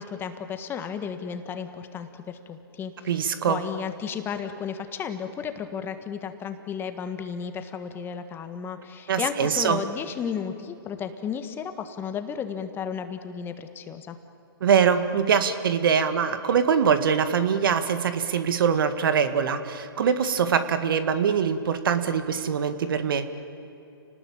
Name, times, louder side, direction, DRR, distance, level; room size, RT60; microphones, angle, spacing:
voice 1, 0.0-2.9 3.5-14.2, left 7 dB, 15° left, 8 dB, 1.6 m, -33 dB
voice 2, 3.0-3.6 9.1-9.8 14.6-23.3, right 7 dB, 60° right, 10 dB, 2.0 m, -23 dB
30.0 x 19.5 x 8.8 m, 2.9 s
hypercardioid pair, 135°, 13 cm